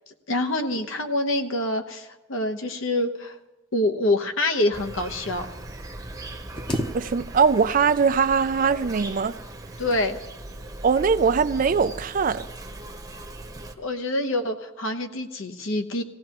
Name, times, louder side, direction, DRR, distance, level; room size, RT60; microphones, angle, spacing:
voice 1, 0.3-3.4 3.7-5.5 9.8-10.2 13.8-16.0, left 1 dB, 75° left, 1.1 m, -26 dB
Insect, 4.7-13.7, right 1 dB, 20° right, 0.9 m, -39 dB
sound 1, 6.5-7.6 7.9-8.6 9.5-10.3 11.0-11.3 11.7-12.0, equal, 25° left, 0.9 m, -34 dB
voice 2, 6.9-9.4 10.8-12.5, right 6 dB, 40° right, 0.4 m, -21 dB
18.5 x 16.5 x 3.0 m
head